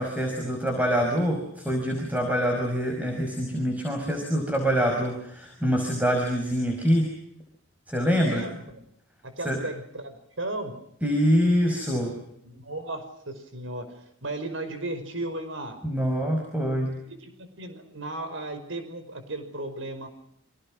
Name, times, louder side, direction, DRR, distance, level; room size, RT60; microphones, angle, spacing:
voice 1, 0.0-7.1 7.9-8.5 9.5-9.6 11.0-12.1 15.8-17.0, equal, 10° right, 2 dB, 5.5 m, -25 dB
voice 2, 8.1-8.8 9.2-10.7 12.4-15.8 17.1-20.1, right 2 dB, 75° right, 9 dB, 5.4 m, -35 dB
29.5 x 26.5 x 6.3 m, 0.73 s
head